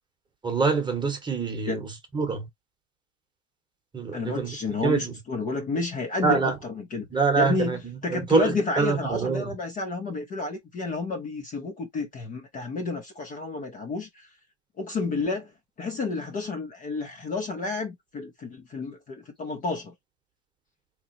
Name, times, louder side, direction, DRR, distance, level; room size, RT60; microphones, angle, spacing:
voice 1, 0.4-1.8 2.1-2.4 3.9-4.5 4.8-5.1 6.2-6.5 7.1-7.8 8.1-9.5, right 5 dB, 10° right, 1.1 m, -25 dB
voice 2, 4.1-7.1 7.4-14.3 14.8-15.5 15.8-19.9, left 3 dB, 25° left, 0.7 m, -30 dB
3.6 x 3.1 x 2.7 m
supercardioid pair, 135°, 36 cm